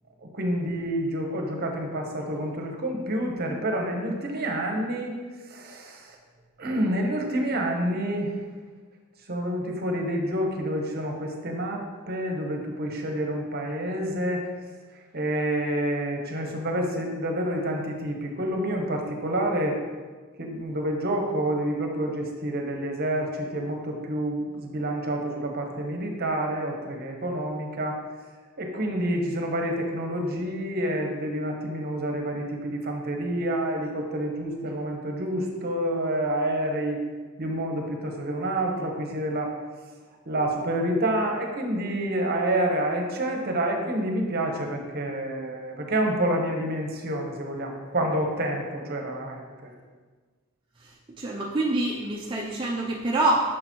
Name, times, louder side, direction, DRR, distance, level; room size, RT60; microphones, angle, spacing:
voice 1, 0.2-5.1 5.5-6.1 6.6-8.4 9.3-14.5 15.1-19.8 20.4-28.0 28.6-37.1 37.4-39.5 40.3-49.7, right 1 dB, 50° right, 2 dB, 1.0 m, -28 dB
voice 2, 51.2-53.5, right 2 dB, 25° right, -3 dB, 0.5 m, -26 dB
6.7 x 6.2 x 3.0 m, 1.4 s
head